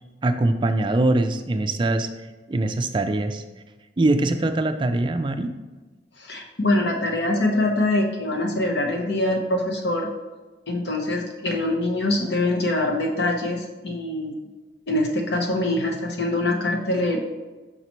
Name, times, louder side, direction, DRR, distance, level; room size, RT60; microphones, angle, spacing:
voice 1, 0.2-2.1 2.5-3.4 4.0-5.5, right 2 dB, 25° right, 8 dB, 0.3 m, -22 dB
voice 2, 6.2-10.1 10.7-14.3 14.9-17.2, left 1 dB, 70° left, 2 dB, 0.9 m, -24 dB
5.7 x 5.5 x 3.0 m, 1.2 s
head